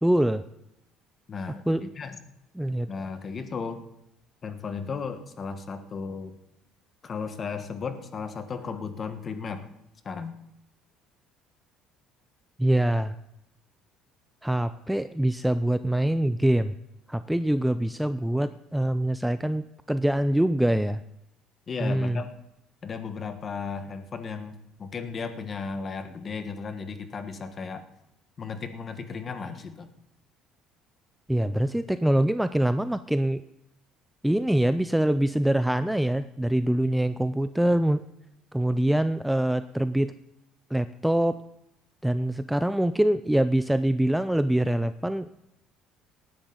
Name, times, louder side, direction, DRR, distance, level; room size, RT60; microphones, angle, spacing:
voice 1, 0.0-0.4 1.7-1.8 2.6-2.9 12.6-13.1 14.4-16.8 17.1-21.0 21.8-22.2 31.3-33.4 34.2-38.0 38.5-40.1 40.7-41.4 42.0-45.3, right 1 dB, 5° right, 12 dB, 0.4 m, -24 dB
voice 2, 1.3-2.2 2.9-3.8 4.4-6.3 7.0-9.7 10.0-10.4 21.7-22.3 22.8-24.5 24.8-27.8 28.4-29.9, left 5 dB, 30° left, 8 dB, 1.3 m, -35 dB
18.5 x 10.0 x 4.0 m, 0.84 s
cardioid pair, 125°, 0 cm